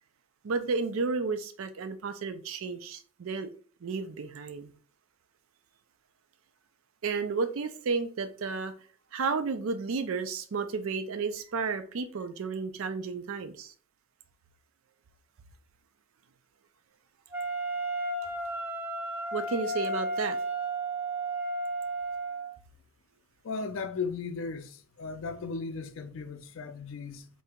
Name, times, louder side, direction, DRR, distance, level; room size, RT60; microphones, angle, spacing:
voice 1, 0.4-3.5 3.8-4.8 7.0-8.7 9.1-13.7 19.3-20.4, right 4 dB, 70° right, 0.4 m, -32 dB
Wind instrument woodwind instrument, 17.3-22.6, right 2 dB, 10° right, 0.3 m, -33 dB
voice 2, 23.4-27.3, left 4 dB, 60° left, 0.4 m, -36 dB
2.8 x 2.7 x 3.4 m
head